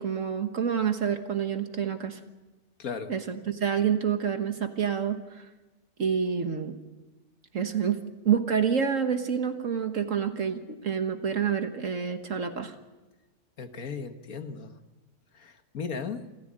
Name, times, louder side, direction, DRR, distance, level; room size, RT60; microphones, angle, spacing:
voice 1, 0.0-2.2 3.1-5.4 6.0-6.7 7.5-12.7, right 7 dB, 55° right, 7 dB, 1.6 m, -28 dB
voice 2, 2.8-3.1 13.6-14.8 15.3-16.3, left 5 dB, 65° left, 8 dB, 1.8 m, -36 dB
27.5 x 14.5 x 8.7 m, 1.1 s
omnidirectional pair, 1.6 m